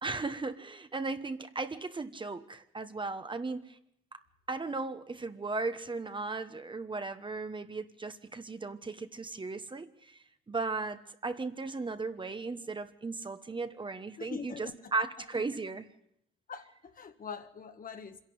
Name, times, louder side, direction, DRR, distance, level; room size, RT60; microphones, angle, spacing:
voice 1, 0.0-3.8 4.1-4.2 4.5-10.2 10.5-15.9, right 3 dB, 25° right, 1.2 m, -36 dB
voice 2, 14.2-14.7 15.3-15.4 16.5-18.2, left 6 dB, 45° left, 1.7 m, -43 dB
25.5 x 11.0 x 9.6 m
cardioid pair, 90°, 20 cm